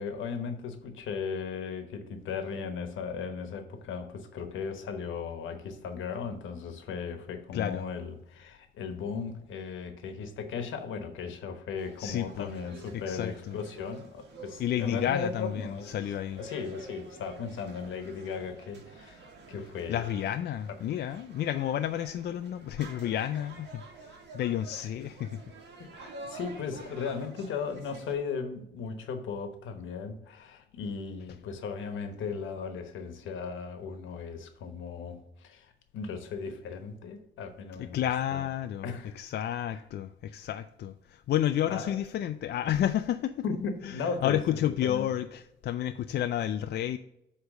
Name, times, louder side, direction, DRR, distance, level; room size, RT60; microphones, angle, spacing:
voice 1, 0.0-15.9 16.4-20.0 24.7-25.1 25.9-38.4 38.8-39.2 39.7-39.8 41.7-42.0 43.4-45.1, left 5 dB, 75° left, 7 dB, 1.1 m, -37 dB
voice 2, 7.5-7.9 12.0-12.5 12.9-13.6 14.6-16.4 19.9-25.4 37.8-43.4 43.8-43.9 44.2-47.0, left 11 dB, 55° left, 8 dB, 0.4 m, -31 dB
sound 1, 11.8-28.1, right 2 dB, 60° right, 1.6 m, -49 dB
8.1 x 3.2 x 6.4 m, 0.81 s
cardioid pair, 90°, 20 cm